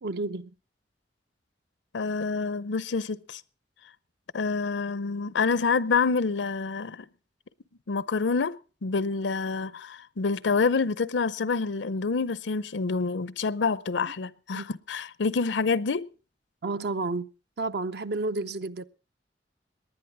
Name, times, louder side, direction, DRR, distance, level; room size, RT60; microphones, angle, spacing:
voice 1, 0.0-0.5 14.5-14.6 16.6-17.3 17.6-18.8, right 3 dB, 65° right, 0.6 m, -31 dB
voice 2, 1.9-3.4 4.3-7.1 7.9-16.1, left 4 dB, 80° left, 0.6 m, -27 dB
19.0 x 10.5 x 4.7 m
head